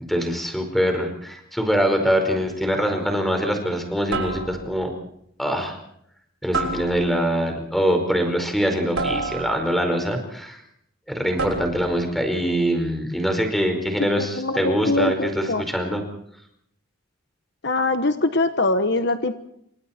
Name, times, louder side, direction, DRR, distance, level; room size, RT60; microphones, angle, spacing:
voice 1, 0.1-4.9 5.4-5.8 6.4-10.6 11.1-16.1, equal, ahead, 4 dB, 4.8 m, -23 dB
sound 1, 2.3-2.6 4.1-4.9 6.5-7.4 9.0-9.9 11.4-12.0, right 3 dB, 85° right, 6.8 m, -29 dB
voice 2, 14.2-15.6 17.6-19.3, left 2 dB, 55° left, 9 dB, 1.3 m, -23 dB
29.0 x 26.5 x 4.5 m, 0.73 s
head